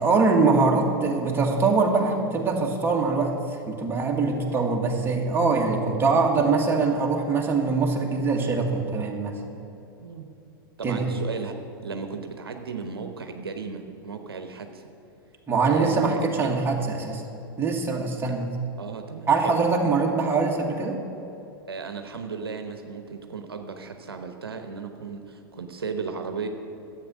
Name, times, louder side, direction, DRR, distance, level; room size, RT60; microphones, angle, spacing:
voice 1, 0.0-3.4 3.7-9.4 10.8-11.0 15.5-17.2 17.6-18.6 19.3-21.0, right 4 dB, 20° right, 0 dB, 1.8 m, -23 dB
voice 2, 10.8-11.5 11.8-14.9 15.7-16.5 18.8-19.6 21.7-26.5, right 5 dB, 80° right, 6 dB, 0.9 m, -35 dB
12.0 x 8.2 x 6.3 m, 2.8 s
hypercardioid pair, 100°, 12 cm